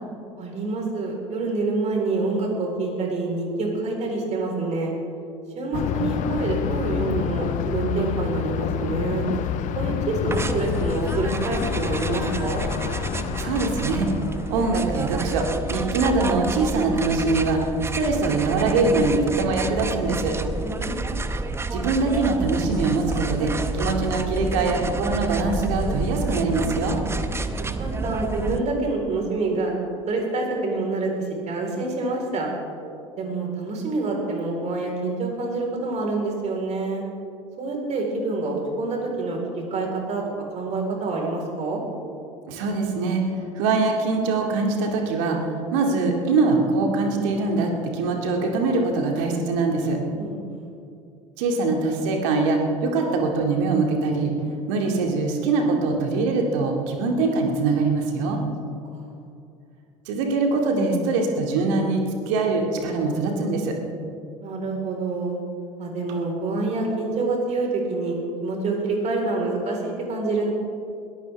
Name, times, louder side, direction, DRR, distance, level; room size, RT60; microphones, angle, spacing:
voice 1, 0.4-4.9 5.5-9.3 9.7-12.6 20.6-21.1 27.8-29.7 30.1-31.1 31.5-32.5 33.2-37.0 37.6-40.2 40.5-41.8 50.2-50.7 58.9-59.1 64.4-65.4 65.8-70.5, right 3 dB, 40° right, 0 dB, 4.3 m, -27 dB
Thunder, 5.7-14.5, left 10 dB, 45° left, 0.8 m, -28 dB
sound 1, 10.3-28.6, right 3 dB, 15° right, 0.8 m, -29 dB
voice 2, 13.4-14.1 14.5-17.7 17.9-20.4 21.7-27.0 42.5-50.0 51.4-54.3 54.7-58.4 60.1-63.8, right 3 dB, 65° right, 2 dB, 2.3 m, -23 dB
21.0 x 14.5 x 3.5 m, 2.5 s
hypercardioid pair, 70°, 17 cm